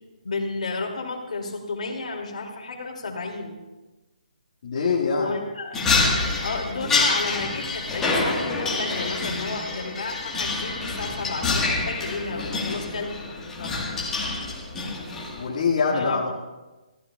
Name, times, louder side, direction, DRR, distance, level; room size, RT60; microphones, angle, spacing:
voice 1, 0.2-3.6 5.1-5.8 6.4-13.1 13.5-13.9 15.1-15.2 15.8-16.3, left 3 dB, 60° left, 1 dB, 2.5 m, -32 dB
voice 2, 4.6-5.3 15.4-16.3, left 5 dB, 40° left, -5 dB, 1.8 m, -24 dB
sound 1, 5.7-15.5, left 3 dB, 10° left, 1.4 m, -27 dB
23.0 x 14.5 x 2.3 m, 1.1 s
hypercardioid pair, 170°, 4 cm